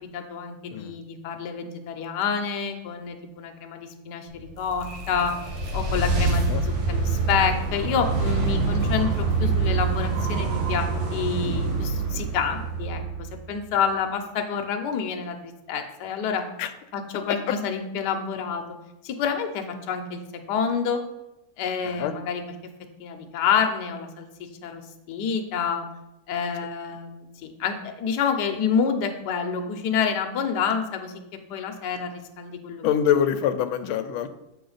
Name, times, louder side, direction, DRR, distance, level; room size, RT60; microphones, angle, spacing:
voice 1, 0.1-4.3 4.6-5.3 5.7-13.0 13.5-15.4 15.7-16.5 16.9-18.6 19.0-20.2 20.5-21.0 21.6-22.4 23.0-24.8 25.1-25.9 26.3-31.2 31.5-32.8, left 6 dB, 65° left, 5 dB, 1.2 m, -28 dB
sound 1, 4.4-13.7, right 3 dB, 70° right, 2.0 m, -26 dB
voice 2, 21.8-22.2 32.8-34.3, left 9 dB, 90° left, 10 dB, 1.4 m, -24 dB
7.8 x 5.1 x 3.9 m, 0.92 s
omnidirectional pair, 2.2 m